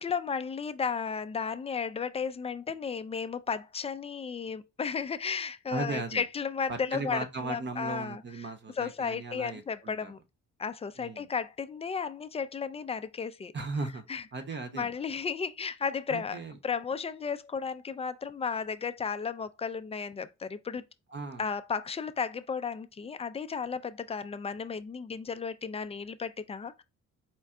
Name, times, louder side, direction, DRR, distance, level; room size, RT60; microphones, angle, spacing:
voice 1, 0.0-8.2 8.8-10.2 10.6-13.5 14.1-14.2 14.7-16.4 16.6-20.8 21.4-26.8, left 6 dB, 20° left, 0.3 m, -34 dB
voice 2, 5.7-6.2 6.7-10.1 11.0-11.2 13.5-14.0 14.3-14.9 16.1-16.6 21.1-21.5, right 3 dB, 35° right, 0.8 m, -37 dB
4.4 x 2.2 x 3.6 m
cardioid pair, 90°, 30 cm